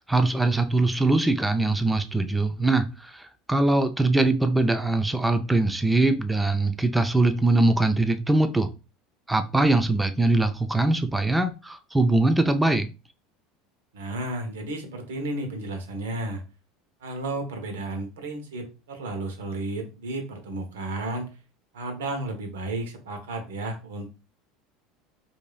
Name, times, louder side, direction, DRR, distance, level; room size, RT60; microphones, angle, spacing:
voice 1, 0.0-8.7 9.3-12.9, right 2 dB, 10° right, 0.4 m, -22 dB
voice 2, 13.9-16.4 17.0-21.3 21.7-24.1, right 2 dB, 85° right, 0.9 m, -33 dB
4.7 x 2.7 x 2.3 m
hypercardioid pair, 85°, 0 cm